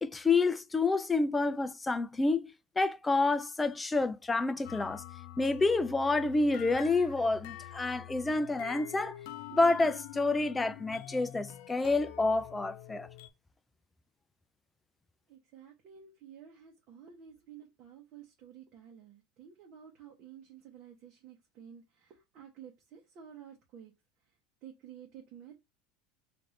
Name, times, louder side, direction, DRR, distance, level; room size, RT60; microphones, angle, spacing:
voice 1, 0.0-5.0 5.4-9.2 9.5-13.1, left 3 dB, 10° left, 0.3 m, -28 dB
sound 1, 4.6-13.3, left 12 dB, 60° left, 0.6 m, -46 dB
voice 2, 15.3-23.9 24.6-25.6, right 8 dB, 40° right, 0.9 m, -52 dB
4.2 x 2.6 x 3.2 m
cardioid pair, 165°, 0 cm